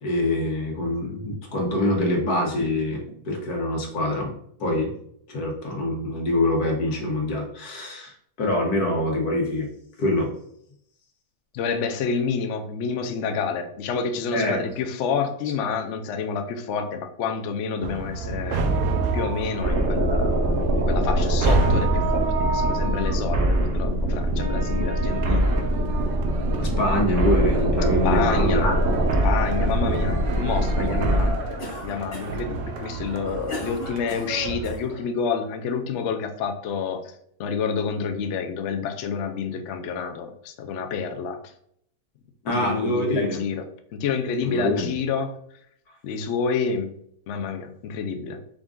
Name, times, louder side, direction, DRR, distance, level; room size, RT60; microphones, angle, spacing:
voice 1, 0.0-4.3 4.6-4.9 5.3-9.7 10.0-10.3 14.3-14.6 26.6-28.8 42.5-43.4 44.4-44.9, left 1 dB, 90° left, 1 dB, 1.6 m, -25 dB
voice 2, 11.5-18.6 19.1-20.4 20.8-25.6 28.0-28.7 29.2-37.1 37.4-41.4 42.5-45.3 46.0-46.9 47.3-48.4, left 6 dB, 65° left, 6 dB, 0.7 m, -28 dB
sound 1, 17.8-34.8, right 4 dB, 75° right, 1.0 m, -30 dB
sound 2, 19.6-31.3, right 1 dB, 50° right, 0.9 m, -23 dB
Cough, 31.6-32.5 33.1-34.8, left 1 dB, 45° left, 1.2 m, -36 dB
5.1 x 2.4 x 3.6 m, 0.70 s
omnidirectional pair, 1.6 m